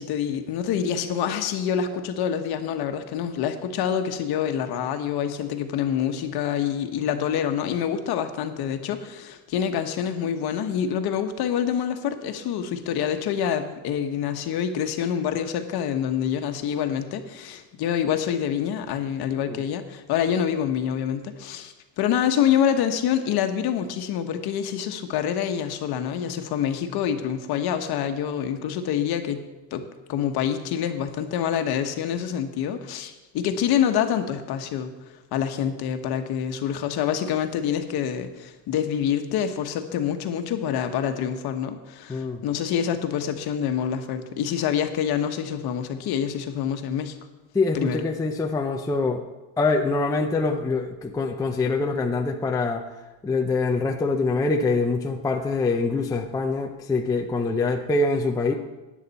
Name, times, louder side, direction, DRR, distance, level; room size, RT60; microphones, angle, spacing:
voice 1, 0.0-29.4 29.7-29.8 30.1-34.9 35.3-47.2 47.7-48.0, left 9 dB, 50° left, 7 dB, 1.3 m, -26 dB
voice 2, 42.1-42.4 47.5-49.2 49.6-52.8 53.2-58.5, left 3 dB, 10° left, 3 dB, 0.4 m, -24 dB
15.0 x 9.9 x 4.2 m, 1.1 s
cardioid pair, 135°, 49 cm